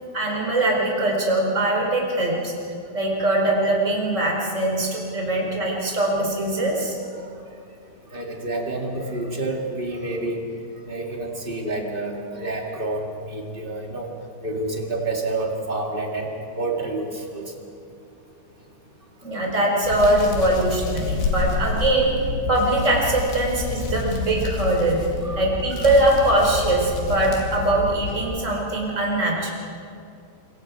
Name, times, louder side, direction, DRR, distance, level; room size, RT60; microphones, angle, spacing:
voice 1, 0.1-2.5 2.9-6.9 19.2-22.2 22.5-25.0 25.4-29.5, right 1 dB, 20° right, -2 dB, 4.2 m, -22 dB
voice 2, 8.1-10.4 10.8-14.1 14.4-17.4 25.2-25.4 25.7-25.8, right 2 dB, 35° right, 0 dB, 0.9 m, -29 dB
Hands, 19.8-28.2, left 3 dB, 75° left, 4.3 m, -29 dB
26.5 x 23.0 x 4.8 m, 2.4 s
omnidirectional pair, 4.7 m